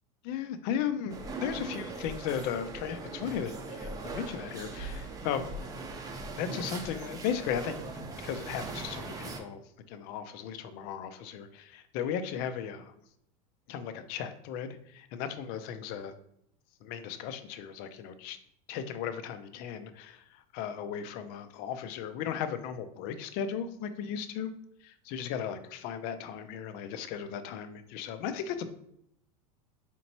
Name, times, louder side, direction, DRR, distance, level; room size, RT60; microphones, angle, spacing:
voice 1, 0.2-5.5 6.4-7.9 8.2-9.6 9.9-12.9 13.7-16.1 16.8-18.4 18.7-24.5 24.8-28.7, left 8 dB, 55° left, 10 dB, 0.5 m, -36 dB
sound 1, 1.1-9.4, right 3 dB, 20° right, 0.6 m, -40 dB
4.2 x 3.0 x 2.8 m, 0.73 s
supercardioid pair, 115°, 18 cm